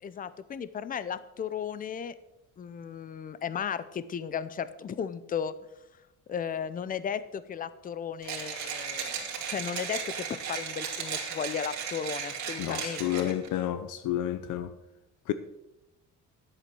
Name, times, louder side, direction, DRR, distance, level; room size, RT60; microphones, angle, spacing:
voice 1, 0.0-2.1 2.6-5.5 6.3-13.3, left 7 dB, 30° left, 0.6 m, -35 dB
Mechanisms, 8.2-13.5, right 7 dB, 65° right, 2.8 m, -36 dB
voice 2, 12.6-14.7 15.3-15.4, left 12 dB, 80° left, 0.7 m, -30 dB
10.5 x 8.2 x 6.1 m
cardioid pair, 155°, 31 cm